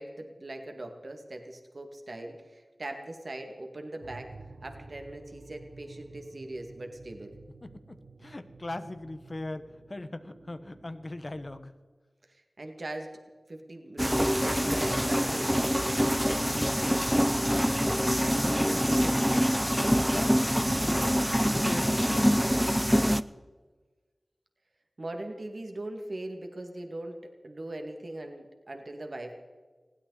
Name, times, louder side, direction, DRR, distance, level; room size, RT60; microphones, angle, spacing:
voice 1, 0.0-4.3 4.6-7.4 12.6-13.2 13.5-16.0 25.0-29.3, right 1 dB, 60° right, 4 dB, 2.2 m, -40 dB
sound 1, 4.0-11.6, right 3 dB, 90° right, 1.2 m, -51 dB
voice 2, 7.6-11.7 17.5-22.8, left 2 dB, 45° left, 10 dB, 1.3 m, -40 dB
sound 2, 14.0-23.2, equal, 5° right, 0.6 m, -25 dB
20.5 x 16.5 x 4.1 m, 1.4 s
wide cardioid pair, 50°, 0 cm